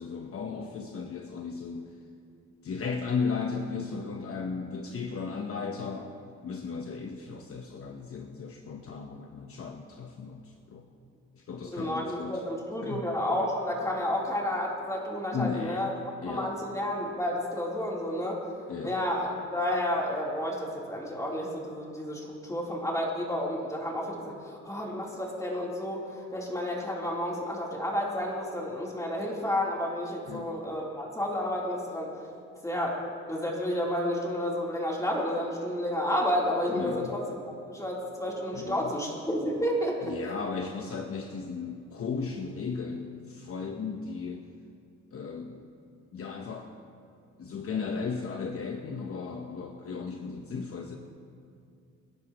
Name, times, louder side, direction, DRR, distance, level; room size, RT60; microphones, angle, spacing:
voice 1, 0.0-1.9 2.6-6.2 6.4-10.8 11.3-12.4 12.8-13.1 15.3-15.9 16.2-16.6 18.7-19.0 30.3-30.5 36.7-37.2 38.5-38.9 40.0-44.5 45.1-45.6 46.1-46.7 47.4-51.0, left 5 dB, 50° left, 3 dB, 1.1 m, -35 dB
voice 2, 11.7-15.9 16.3-18.4 18.8-32.1 32.6-33.0 33.3-37.4 37.7-40.2, left 1 dB, 10° left, -4 dB, 3.6 m, -31 dB
26.0 x 11.0 x 3.1 m, 2.4 s
cardioid pair, 90°, 30 cm